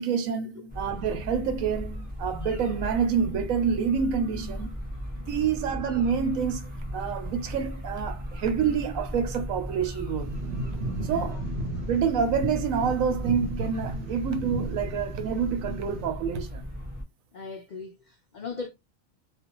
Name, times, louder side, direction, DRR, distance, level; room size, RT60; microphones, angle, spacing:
voice 1, 0.0-4.8 5.1-10.3 11.0-11.4 11.9-16.6, right 7 dB, 85° right, 1.1 m, -27 dB
sound 1, 0.7-17.0, equal, 10° right, 0.6 m, -36 dB
voice 2, 5.2-5.6 10.9-11.4 17.3-18.7, left 4 dB, 75° left, 0.4 m, -40 dB
sound 2, 10.2-16.1, right 2 dB, 65° right, 0.7 m, -35 dB
2.5 x 2.3 x 2.9 m
omnidirectional pair, 1.4 m